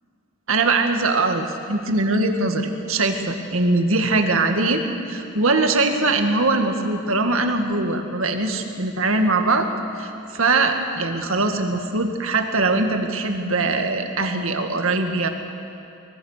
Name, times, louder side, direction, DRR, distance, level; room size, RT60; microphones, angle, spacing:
voice 1, 0.5-9.7 9.9-15.3, right 3 dB, 70° right, 5 dB, 2.0 m, -21 dB
24.5 x 22.0 x 6.7 m, 2.8 s
head